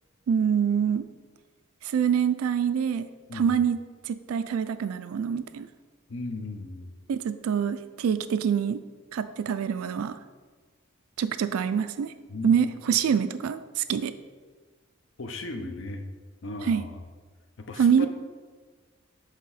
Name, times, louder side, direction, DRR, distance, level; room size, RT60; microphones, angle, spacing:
voice 1, 0.3-1.0 1.8-3.1 3.3-3.8 4.0-5.7 7.1-8.8 9.1-10.1 11.2-12.1 12.4-14.1 16.7-16.8 17.8-18.1, right 7 dB, 85° right, 12 dB, 0.3 m, -25 dB
voice 2, 6.1-6.9 12.3-13.0 15.2-16.0 16.4-17.0 17.6-18.1, left 2 dB, 60° left, 6 dB, 0.6 m, -36 dB
7.7 x 2.9 x 4.8 m, 1.4 s
head